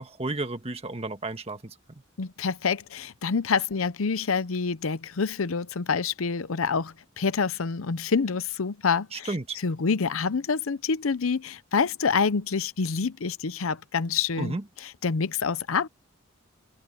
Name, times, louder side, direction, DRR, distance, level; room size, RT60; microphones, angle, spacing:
voice 1, 0.0-2.0 9.1-9.6 14.4-14.6, right 2 dB, 30° right, 1.6 m, -33 dB
voice 2, 2.2-9.3 9.6-14.6 15.0-15.9, left 5 dB, 75° left, 0.7 m, -27 dB
head